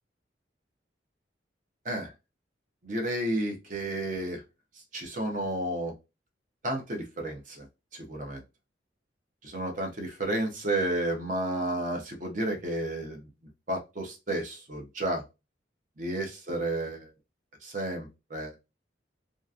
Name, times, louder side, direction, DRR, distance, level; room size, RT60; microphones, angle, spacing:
voice 1, 2.8-4.4 4.9-5.9 6.6-7.7 7.9-8.4 9.4-13.2 13.7-15.2 16.0-17.1 17.6-18.5, right 1 dB, 45° right, 2 dB, 0.7 m, -31 dB
2.8 x 2.4 x 2.4 m, 0.26 s
head